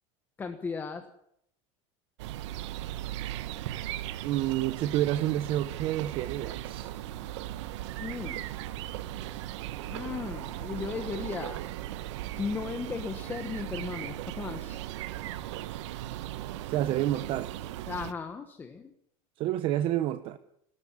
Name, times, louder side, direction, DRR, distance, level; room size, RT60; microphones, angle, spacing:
voice 1, 0.4-1.1 8.0-8.5 9.9-11.6 12.4-14.8 17.9-18.9, left 5 dB, 15° left, 1.3 m, -36 dB
sound 1, 2.2-18.1, right 13 dB, 80° right, 1.5 m, -37 dB
voice 2, 4.2-6.9 16.7-17.5 19.4-20.4, right 13 dB, 35° right, 0.9 m, -29 dB
29.0 x 13.5 x 9.9 m
cardioid pair, 180°, 15 cm